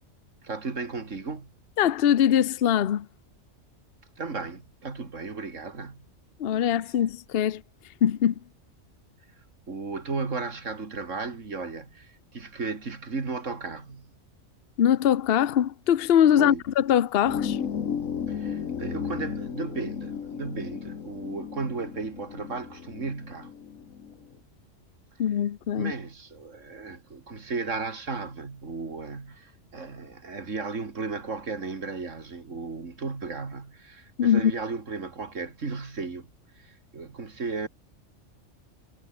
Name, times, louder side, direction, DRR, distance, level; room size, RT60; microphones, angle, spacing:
voice 1, 0.4-1.5 4.2-6.1 9.7-14.1 16.4-16.6 18.3-23.5 25.7-36.3 36.6-37.7, right 4 dB, 75° right, 2.9 m, -35 dB
voice 2, 1.8-3.1 6.4-7.6 8.0-8.3 14.8-17.6 25.2-25.9 34.2-34.5, left 10 dB, 55° left, 0.9 m, -22 dB
sound 1, 17.3-24.2, left 7 dB, 85° left, 1.7 m, -34 dB
omnidirectional pair, 1.3 m